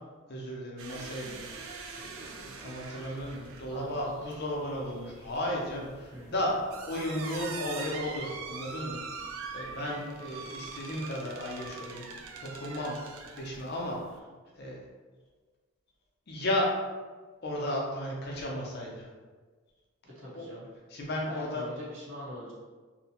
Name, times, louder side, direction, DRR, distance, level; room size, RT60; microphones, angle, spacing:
voice 1, 0.3-1.5 1.9-12.1 12.4-14.3 14.6-14.8 16.3-16.7 17.4-19.1 20.3-20.5 20.9-21.7, left 1 dB, 50° left, -2 dB, 0.6 m, -34 dB
sound 1, 0.8-14.2, right 4 dB, 80° right, 0.3 m, -43 dB
voice 2, 3.7-4.1 6.1-6.3 9.9-10.0 20.0-20.7 21.3-22.5, left 1 dB, 65° right, -7 dB, 0.9 m, -43 dB
2.7 x 2.1 x 2.8 m, 1.4 s
head